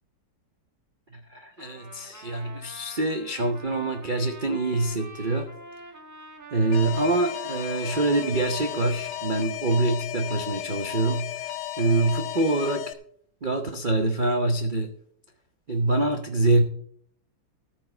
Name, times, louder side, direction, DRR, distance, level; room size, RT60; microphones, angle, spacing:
voice 1, 1.1-5.5 6.5-12.9 13.4-14.9 15.7-16.6, right 2 dB, 70° right, 5 dB, 0.4 m, -25 dB
Trumpet, 1.6-9.3, right 2 dB, 10° right, 1.1 m, -46 dB
Alarm, 6.7-12.9, left 13 dB, 80° left, 1.7 m, -34 dB
14.0 x 4.8 x 7.6 m, 0.63 s
omnidirectional pair, 2.4 m